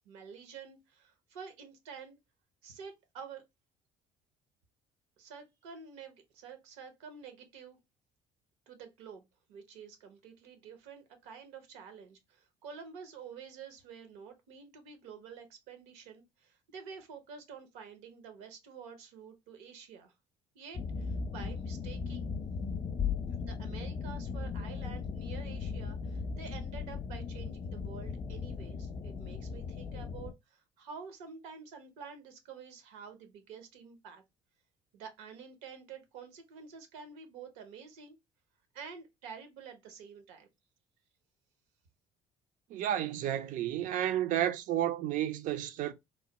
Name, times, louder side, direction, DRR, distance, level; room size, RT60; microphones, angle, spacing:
voice 1, 0.0-2.2 2.6-3.4 5.2-7.8 8.7-20.1 20.5-22.3 23.4-34.2 34.9-38.2 38.7-40.5, right 6 dB, 80° right, 0.8 m, -49 dB
sound 1, 20.7-30.3, left 5 dB, 35° left, 0.3 m, -37 dB
voice 2, 42.7-45.9, right 11 dB, 60° right, 0.4 m, -31 dB
3.1 x 2.1 x 2.8 m
hypercardioid pair, 65°, 15 cm